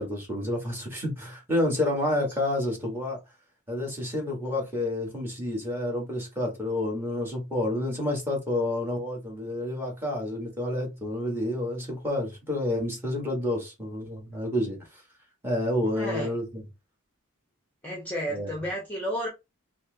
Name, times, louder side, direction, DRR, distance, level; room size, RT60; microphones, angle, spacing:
voice 1, 0.0-3.2 3.7-15.0 15.4-16.6 18.3-18.5, left 1 dB, 10° right, 1.5 m, -29 dB
voice 2, 15.9-16.3 17.8-19.3, equal, 10° left, 0.9 m, -32 dB
4.2 x 2.1 x 3.9 m
head